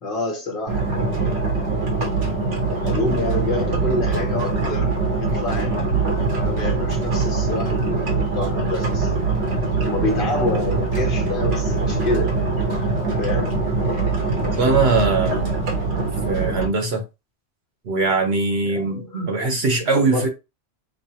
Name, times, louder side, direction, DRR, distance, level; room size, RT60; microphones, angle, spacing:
voice 1, 0.0-1.6 2.8-6.1 6.3-9.2 9.8-12.4 13.1-13.6 18.7-19.6 19.9-20.3, left 2 dB, 50° left, 1.1 m, -28 dB
sound 1, 0.7-16.7, right 3 dB, 85° right, 1.3 m, -22 dB
voice 2, 14.6-15.6 16.3-17.0 17.8-20.3, right 3 dB, 65° right, 1.1 m, -21 dB
5.3 x 2.0 x 2.7 m
omnidirectional pair, 1.2 m